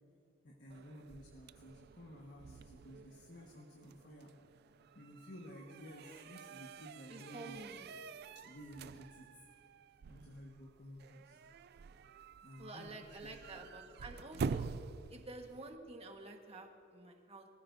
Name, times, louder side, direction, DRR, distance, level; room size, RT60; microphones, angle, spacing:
voice 1, 0.4-4.3 4.9-7.6 8.3-9.3 10.0-11.4 12.4-13.7, equal, 60° left, -1 dB, 1.5 m, -53 dB
sound 1, 0.7-15.7, right 5 dB, 55° right, 0.3 m, -47 dB
voice 2, 7.1-7.9 12.6-14.7 15.1-17.5, right 2 dB, 35° right, 3 dB, 1.5 m, -50 dB
23.5 x 15.0 x 2.7 m, 2.5 s
head